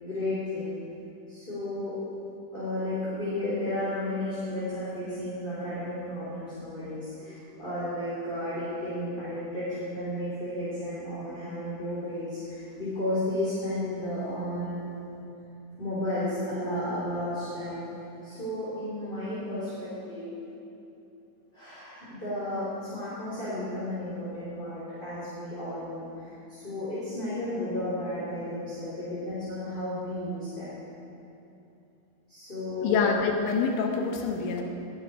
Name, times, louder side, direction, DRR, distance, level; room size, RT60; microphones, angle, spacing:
voice 1, 0.0-0.8 1.3-2.0 2.5-14.8 15.8-17.8 18.2-20.3 21.5-30.7 32.3-33.1, left 1 dB, 10° left, -10 dB, 3.4 m, -33 dB
voice 2, 32.8-34.6, left 5 dB, 80° left, 2 dB, 3.6 m, -26 dB
20.5 x 12.0 x 5.0 m, 2.8 s
omnidirectional pair, 5.3 m